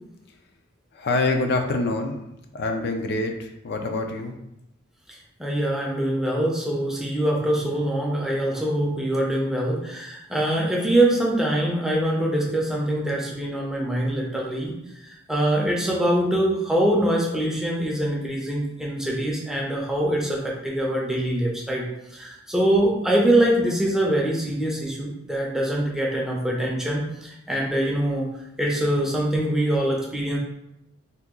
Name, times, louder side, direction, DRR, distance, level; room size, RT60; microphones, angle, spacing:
voice 1, 0.9-2.2 2.5-4.4, left 2 dB, 55° left, 4 dB, 0.3 m, -25 dB
voice 2, 5.1-14.8 15.0-21.8 22.1-28.3 28.6-30.4, right 1 dB, 5° right, -3 dB, 0.5 m, -24 dB
2.7 x 2.2 x 3.6 m, 0.87 s
head